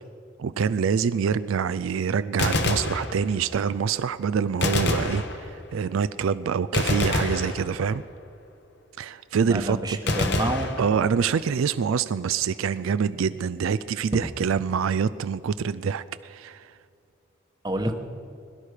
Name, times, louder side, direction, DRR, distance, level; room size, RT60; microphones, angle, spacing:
voice 1, 0.4-8.0 9.0-10.0 10.8-16.8, right 6 dB, 80° right, 13 dB, 0.4 m, -26 dB
Gunshot gunfire, 2.3-3.6 4.6-5.8 6.7-8.2 10.1-11.4, left 2 dB, 55° left, 1.2 m, -27 dB
voice 2, 9.3-10.7 17.6-17.9, right 1 dB, 20° right, 5 dB, 1.0 m, -28 dB
21.5 x 11.5 x 4.9 m, 2.5 s
head